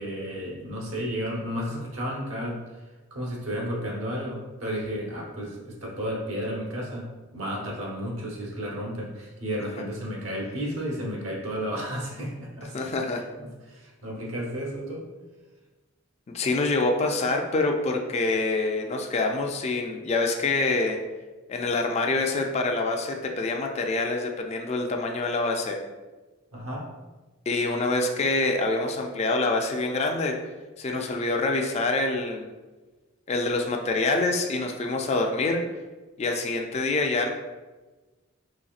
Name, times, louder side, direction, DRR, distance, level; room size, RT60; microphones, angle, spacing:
voice 1, 0.0-2.6 3.1-7.1 7.3-15.0 26.5-26.8, equal, 90° right, -3 dB, 1.0 m, -33 dB
voice 2, 12.7-13.2 16.3-21.0 21.5-25.8 27.5-30.4 30.8-32.5 33.3-35.6 36.2-37.3, left 3 dB, 30° left, 3 dB, 0.3 m, -26 dB
4.0 x 3.1 x 2.4 m, 1.2 s
head